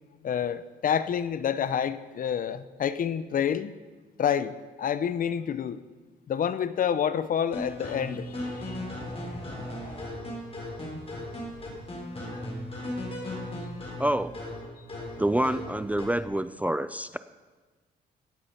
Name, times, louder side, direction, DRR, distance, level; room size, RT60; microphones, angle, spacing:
voice 1, 0.2-3.7 4.2-5.8 6.3-8.8 12.3-12.4, left 8 dB, 50° left, 14 dB, 0.7 m, -28 dB
sound 1, 7.5-16.2, left 1 dB, 35° left, 4.4 m, -37 dB
voice 2, 14.0-14.4 15.2-17.2, right 1 dB, 10° right, 13 dB, 0.4 m, -27 dB
17.0 x 8.5 x 5.8 m, 1.4 s
cardioid pair, 110°, 18 cm